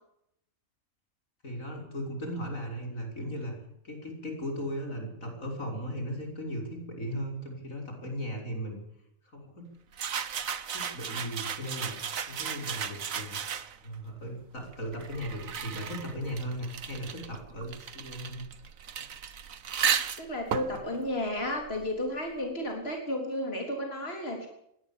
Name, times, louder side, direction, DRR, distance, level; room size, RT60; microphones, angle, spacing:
voice 1, 1.4-3.5 3.8-8.8 9.3-9.7 10.7-13.4 13.8-18.5, equal, 75° left, 2 dB, 6.3 m, -37 dB
sound 1, 9.9-13.9 14.7-22.1, right 7 dB, 75° right, 1.6 m, -35 dB
voice 2, 20.2-24.5, left 1 dB, 45° left, 2 dB, 4.0 m, -33 dB
22.0 x 18.5 x 7.2 m, 0.76 s
omnidirectional pair, 1.4 m